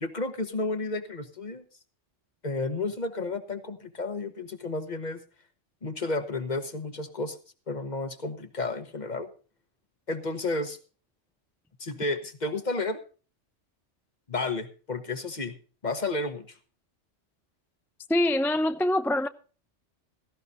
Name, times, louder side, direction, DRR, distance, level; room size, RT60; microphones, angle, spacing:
voice 1, 0.0-1.6 2.4-5.2 5.8-7.4 7.7-9.3 10.1-10.8 11.8-13.0 14.3-15.5 15.8-16.4, left 3 dB, 35° left, 1.5 m, -32 dB
voice 2, 18.1-19.3, left 1 dB, 5° left, 0.4 m, -24 dB
17.0 x 15.5 x 2.6 m
omnidirectional pair, 1.3 m